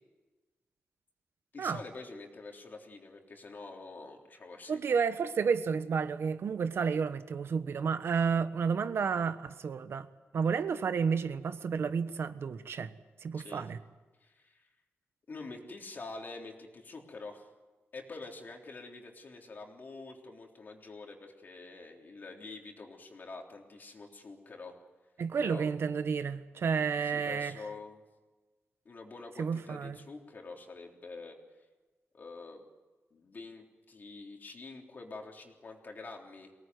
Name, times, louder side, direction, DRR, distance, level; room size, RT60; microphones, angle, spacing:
voice 1, 1.5-4.9 13.3-13.7 14.2-14.7 15.3-17.5 17.9-24.8 25.4-25.7 27.0-28.0 28.9-31.4 32.1-32.6 33.1-36.5, left 3 dB, 45° left, 3.6 m, -46 dB
voice 2, 4.7-10.1 10.3-12.9 13.2-13.8 25.2-27.5 29.4-30.0, right 6 dB, 65° right, 1.2 m, -31 dB
24.0 x 18.5 x 9.5 m
wide cardioid pair, 125°, 4 cm